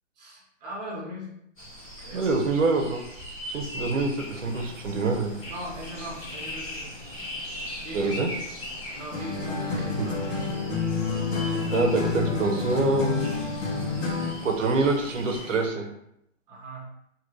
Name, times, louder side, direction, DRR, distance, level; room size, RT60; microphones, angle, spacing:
voice 1, 0.2-1.3 2.0-2.3 5.5-6.9 7.8-8.4 8.9-10.5 16.5-16.9, right 1 dB, 35° right, -3 dB, 1.0 m, -39 dB
sound 1, 1.6-15.4, equal, 10° left, 0.9 m, -42 dB
voice 2, 2.1-3.0 3.5-5.3 7.9-8.3 10.0-10.1 11.7-13.3 14.4-15.9, right 3 dB, 75° right, 3 dB, 0.8 m, -25 dB
sound 2, 4.2-15.7, left 2 dB, 50° left, 1.3 m, -42 dB
sound 3, 9.1-14.5, left 4 dB, 80° left, 1.2 m, -28 dB
2.9 x 2.5 x 3.0 m, 0.76 s
hypercardioid pair, 160°, 38 cm